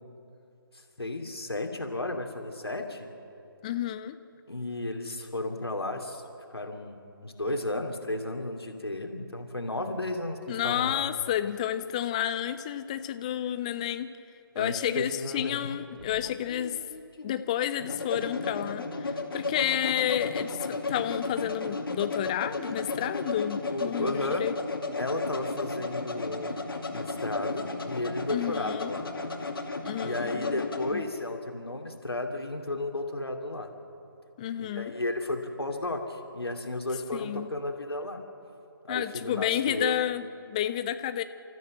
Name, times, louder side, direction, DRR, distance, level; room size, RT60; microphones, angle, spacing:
voice 1, 1.0-3.1 4.5-6.2 6.5-11.1 14.5-15.7 23.7-24.4 25.0-26.6 26.9-29.1 30.0-33.7 34.6-38.2 38.8-40.0, left 2 dB, 85° left, 4 dB, 2.6 m, -33 dB
voice 2, 3.6-4.2 10.5-14.1 14.6-16.8 17.2-24.6 28.3-28.9 29.8-31.0 34.4-34.9 37.1-37.5 38.9-41.2, left 11 dB, 15° left, 12 dB, 0.4 m, -31 dB
sound 1, 15.6-31.0, left 3 dB, 65° left, 2.3 m, -34 dB
27.5 x 14.0 x 7.5 m, 2.8 s
figure-of-eight pair, 150°, 13 cm